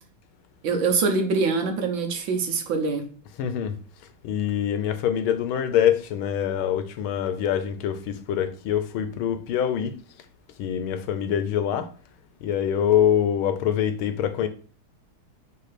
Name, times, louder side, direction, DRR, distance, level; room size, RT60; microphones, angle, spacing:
voice 1, 0.6-3.1, right 4 dB, 70° right, 1.7 m, -24 dB
voice 2, 3.4-3.8 4.2-9.9 10.6-11.9 12.4-14.5, left 9 dB, 80° left, 1.5 m, -24 dB
5.9 x 3.2 x 5.8 m
omnidirectional pair, 2.3 m